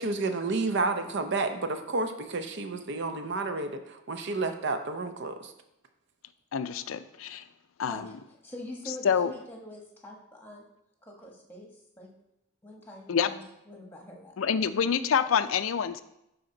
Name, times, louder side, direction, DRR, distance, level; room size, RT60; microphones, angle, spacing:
voice 1, 0.0-5.5, right 3 dB, 55° right, 7 dB, 0.7 m, -30 dB
voice 2, 6.5-7.4 7.8-8.0 9.0-9.3 13.1-13.3 14.4-16.0, left 7 dB, 75° left, 12 dB, 0.4 m, -26 dB
voice 3, 7.9-10.6 11.0-12.1 12.6-14.3, left 1 dB, 10° left, 0 dB, 1.3 m, -44 dB
11.0 x 4.2 x 3.8 m, 0.85 s
head